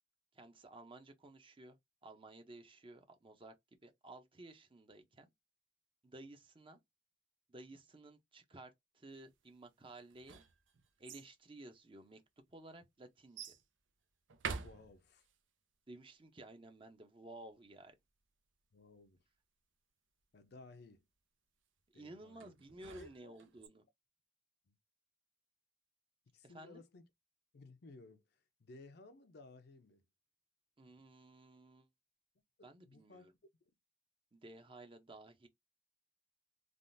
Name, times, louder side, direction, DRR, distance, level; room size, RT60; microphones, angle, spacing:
voice 1, 0.3-1.8 2.0-3.5 3.8-5.3 6.0-6.8 7.5-10.4 11.0-12.2 12.5-13.5 15.9-17.9 21.9-23.8 26.4-26.8 30.8-31.9 32.6-33.3 34.3-35.5, right 2 dB, 30° right, 0.7 m, -55 dB
sound 1, 10.0-11.3 12.1-12.2 13.4-13.6 14.3-15.3 22.4-23.7, right 5 dB, 90° right, 0.6 m, -47 dB
voice 2, 14.6-15.3 18.7-19.2 20.3-21.0 21.9-22.5 23.0-23.3 24.7-24.8 26.3-27.1 27.5-28.2 28.6-30.0 32.6-33.4, left 2 dB, 60° left, 0.5 m, -57 dB
3.5 x 2.4 x 2.5 m
head